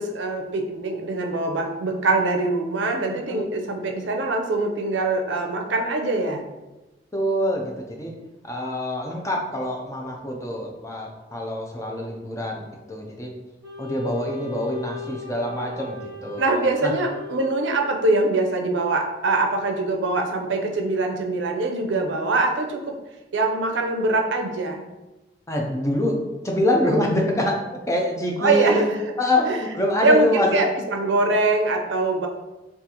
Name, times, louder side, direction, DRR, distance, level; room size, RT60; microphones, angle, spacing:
voice 1, 0.0-6.4 16.4-23.0 23.3-24.8 28.4-28.8 29.4-29.6 30.0-32.3, right 2 dB, 90° right, 3 dB, 0.5 m, -23 dB
voice 2, 3.1-3.4 7.1-8.1 8.4-13.3 13.8-16.5 16.8-16.9 25.5-26.2 26.4-27.6 27.9-28.9 29.2-30.6, left 1 dB, 15° left, 0 dB, 0.4 m, -25 dB
Wind instrument woodwind instrument, 13.6-18.2, left 6 dB, 20° right, 0.7 m, -37 dB
3.8 x 2.4 x 2.8 m, 1.1 s
head